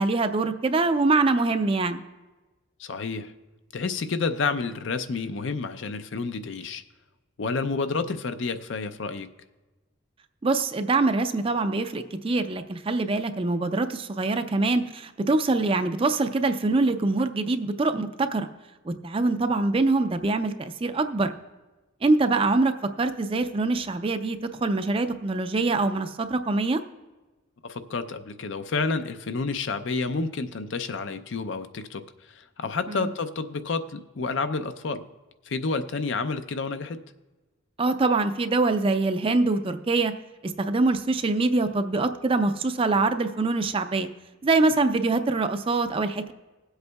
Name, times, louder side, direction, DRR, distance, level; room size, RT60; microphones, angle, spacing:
voice 1, 0.0-2.0 10.4-18.5 18.8-21.3 22.0-22.7 23.0-26.8 32.9-33.1 37.8-40.1 40.4-44.1 44.4-46.3, right 3 dB, 25° right, 9 dB, 0.4 m, -24 dB
voice 2, 2.8-3.3 3.7-6.8 7.4-9.3 27.6-32.0 32.3-35.0 35.5-37.0, left 4 dB, 65° left, 10 dB, 0.5 m, -29 dB
20.5 x 8.0 x 2.3 m, 1.2 s
head